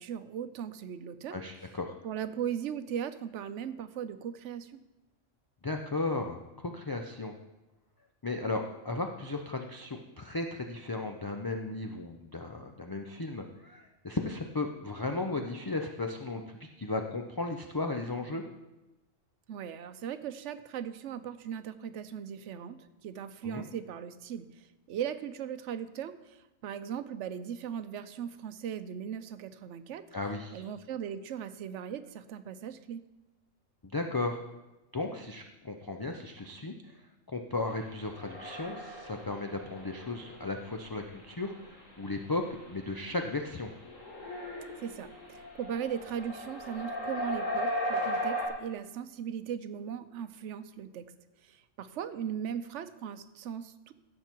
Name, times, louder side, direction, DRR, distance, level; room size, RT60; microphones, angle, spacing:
voice 1, 0.0-1.4 2.0-4.8 19.5-30.0 30.5-33.0 44.8-51.1 51.4-53.9, right 8 dB, 70° right, 11 dB, 1.0 m, -38 dB
voice 2, 1.3-1.9 5.6-6.4 6.7-7.3 8.2-18.4 23.4-23.6 30.1-30.6 33.9-34.4 34.9-36.7 37.3-42.4 42.7-43.7, left 2 dB, 30° left, 3 dB, 0.4 m, -35 dB
sound 1, 37.9-48.5, equal, 80° left, 2.7 m, -37 dB
16.0 x 6.7 x 4.5 m, 1.0 s
omnidirectional pair, 1.3 m